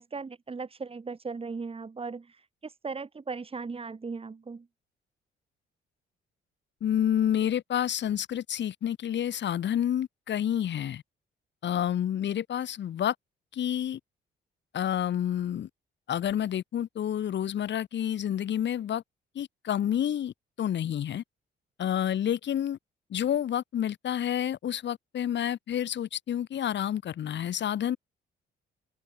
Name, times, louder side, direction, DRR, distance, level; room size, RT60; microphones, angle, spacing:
voice 1, 0.0-4.7, right 4 dB, 30° right, 2.7 m, -38 dB
voice 2, 6.8-11.0 11.6-13.1 13.5-14.0 14.7-15.7 16.1-19.0 19.3-21.2 21.8-22.8 23.1-28.0, left 10 dB, 65° left, 3.0 m, -29 dB
open air
cardioid pair, 90°, 20 cm